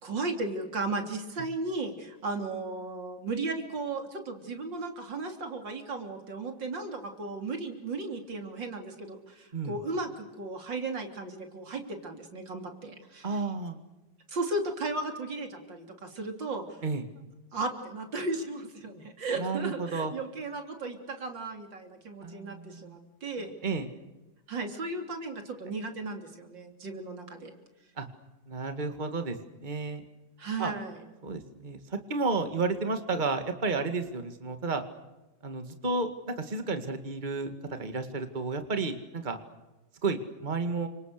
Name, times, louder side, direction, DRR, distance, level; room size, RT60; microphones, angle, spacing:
voice 1, 0.0-13.4 14.3-16.8 17.5-23.6 24.5-27.5 30.4-31.0, right 3 dB, 85° right, 4 dB, 4.0 m, -35 dB
voice 2, 13.2-13.8 16.8-17.0 19.4-20.1 22.2-23.0 23.6-23.9 28.0-28.1 28.5-30.0 30.6-30.7 31.2-34.8 35.4-39.4 40.0-40.9, right 3 dB, 25° right, 7 dB, 2.1 m, -32 dB
29.5 x 26.0 x 6.7 m, 1.0 s
omnidirectional pair, 1.9 m